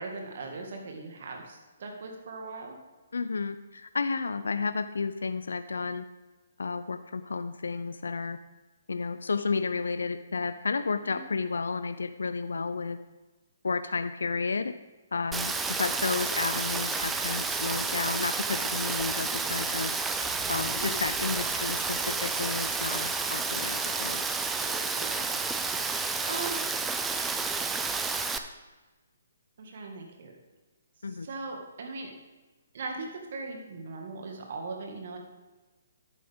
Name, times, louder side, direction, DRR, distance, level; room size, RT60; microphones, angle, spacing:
voice 1, 0.0-2.8 11.1-11.3 20.8-21.0 24.6-25.4 25.8-26.6 29.6-30.4 31.0-32.1 32.7-35.2, right 3 dB, 55° right, 2 dB, 2.0 m, -39 dB
voice 2, 3.1-6.1 6.6-8.4 8.9-13.0 13.6-14.7 15.1-15.5 15.8-19.9 20.5-24.3 31.0-31.3, left 4 dB, 75° left, 11 dB, 0.5 m, -32 dB
Rain, 15.3-28.4, right 4 dB, 10° right, 0.6 m, -30 dB
sound 1, 20.2-24.8 25.0-25.3, left 2 dB, 15° left, 1.3 m, -51 dB
11.0 x 9.4 x 3.6 m, 1.2 s
figure-of-eight pair, 135°, 0 cm